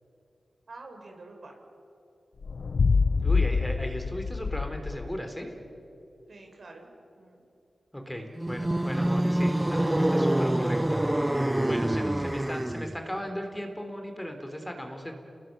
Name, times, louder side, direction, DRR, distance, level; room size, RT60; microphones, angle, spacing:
voice 1, 0.7-1.6 6.3-6.9 7.2-7.4 15.0-15.1, right 3 dB, 65° right, 2 dB, 5.4 m, -47 dB
sound 1, 2.4-5.2, left 4 dB, 70° left, 0.6 m, -26 dB
voice 2, 3.2-5.5 7.9-11.0 11.7-15.1, equal, 10° left, 4 dB, 3.7 m, -37 dB
sound 2, 8.4-13.0, right 1 dB, 15° right, 0.9 m, -26 dB
29.5 x 20.5 x 7.8 m, 2.7 s
cardioid pair, 55°, 0 cm